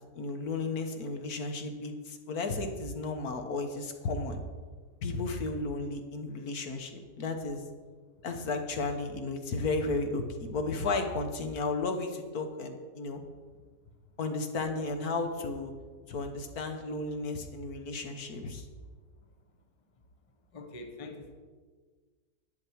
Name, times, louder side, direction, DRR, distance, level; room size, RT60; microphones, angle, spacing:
voice 1, 0.1-4.4 5.0-7.6 8.2-13.2 14.2-15.7 16.1-18.7, left 3 dB, 65° left, 5 dB, 1.6 m, -34 dB
voice 2, 20.5-21.3, left 2 dB, 25° left, 4 dB, 0.8 m, -44 dB
10.5 x 9.8 x 4.6 m, 1.5 s
omnidirectional pair, 1.8 m